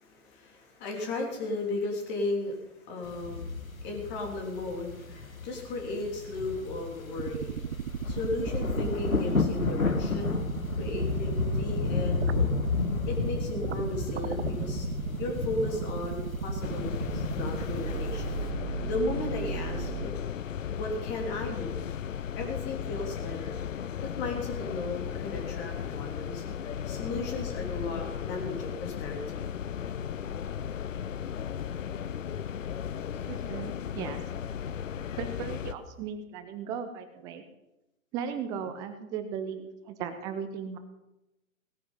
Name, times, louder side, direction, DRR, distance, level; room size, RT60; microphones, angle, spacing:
voice 1, 0.0-7.6 8.1-10.4 10.7-12.5 13.1-14.9 15.2-18.3 18.8-20.1 20.8-21.8 22.3-23.6 24.0-26.4 26.8-29.5, left 2 dB, 25° left, 2 dB, 3.2 m, -35 dB
sound 1, 3.0-18.5, left 4 dB, 90° left, 1.5 m, -32 dB
sound 2, 7.2-20.1, right 9 dB, 55° right, 0.8 m, -36 dB
sound 3, 16.6-35.7, left 8 dB, 70° left, 0.7 m, -36 dB
voice 2, 33.2-34.2 35.2-37.4 38.1-40.8, right 7 dB, 10° right, 9 dB, 0.5 m, -36 dB
18.0 x 9.4 x 5.5 m, 0.94 s
figure-of-eight pair, 120°, 40 cm